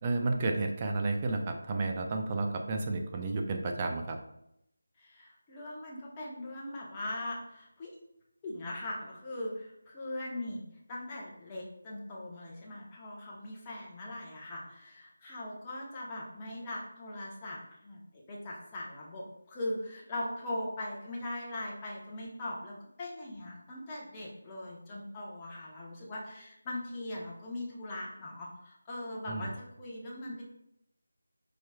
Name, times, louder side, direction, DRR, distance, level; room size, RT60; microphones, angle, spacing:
voice 1, 0.0-4.2 29.3-29.5, right 3 dB, 25° right, 3 dB, 0.4 m, -31 dB
voice 2, 5.0-7.9 8.4-10.6 10.9-18.0 18.3-30.4, left 1 dB, 20° left, -4 dB, 0.8 m, -40 dB
4.7 x 2.9 x 2.2 m, 0.79 s
figure-of-eight pair, 165°, 0 cm